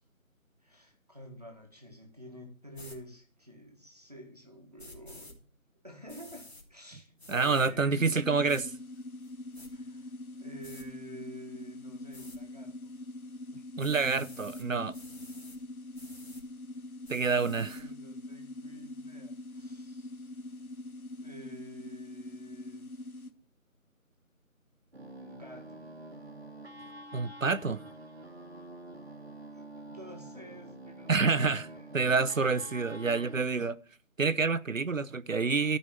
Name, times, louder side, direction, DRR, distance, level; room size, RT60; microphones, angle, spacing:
voice 1, 0.6-5.4 5.8-8.1 9.7-10.1 10.4-12.9 13.5-13.7 17.5-20.3 21.2-22.9 25.2-25.9 29.5-32.0 32.6-32.9, equal, 30° right, 1.7 m, -50 dB
sound 1, 2.7-3.0 4.8-5.3 6.1-6.6 7.2-7.7 8.5-8.6 9.2-9.7 10.6-10.9 12.1-12.4 13.8-14.7 14.9-15.6 15.9-16.4 17.0-17.8, left 2 dB, 50° left, 3.2 m, -50 dB
voice 2, 7.3-8.7 13.8-14.9 17.1-17.8 27.1-27.8 31.1-31.7 31.9-33.8 34.2-35.8, right 4 dB, 65° right, 0.8 m, -28 dB
sound 2, 8.0-23.3, left 2 dB, 80° left, 1.4 m, -44 dB
sound 3, 24.9-33.4, right 1 dB, 45° right, 1.5 m, -47 dB
12.5 x 5.4 x 7.2 m
figure-of-eight pair, 180°, 42 cm